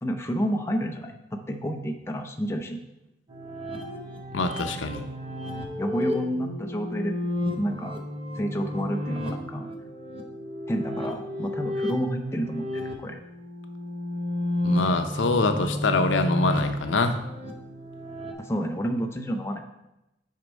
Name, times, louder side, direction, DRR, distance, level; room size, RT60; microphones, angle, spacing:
voice 1, 0.0-2.8 5.8-7.2 7.6-8.0 8.4-9.7 10.7-13.2 18.4-19.6, equal, 15° left, 3 dB, 0.5 m, -30 dB
sound 1, 3.3-18.3, left 1 dB, 30° right, 0.8 m, -32 dB
voice 2, 4.3-5.0 14.6-17.2, left 3 dB, 80° left, 7 dB, 0.6 m, -24 dB
6.4 x 4.5 x 5.2 m, 0.92 s
head